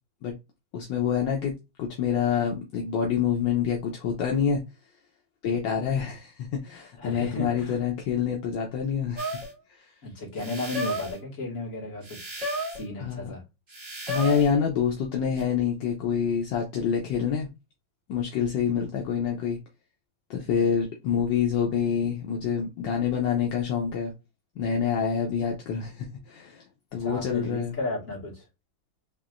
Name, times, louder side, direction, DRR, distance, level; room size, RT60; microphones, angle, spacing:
voice 1, 0.7-1.5 1.8-4.6 5.4-9.4 9.7-9.9 13.0-13.3 14.1-17.5 18.1-19.6 20.3-24.1 24.6-26.6 26.9-27.7, left 7 dB, 75° left, 1.4 m, -27 dB
voice 2, 6.9-7.8 10.0-13.4 27.0-28.5, left 2 dB, 45° left, 2.3 m, -34 dB
sound 1, 9.2-9.5 10.4-11.2 12.0-12.9 13.7-14.5 15.4-15.5, right 1 dB, 25° right, 1.1 m, -33 dB
4.6 x 3.0 x 2.5 m
omnidirectional pair, 2.0 m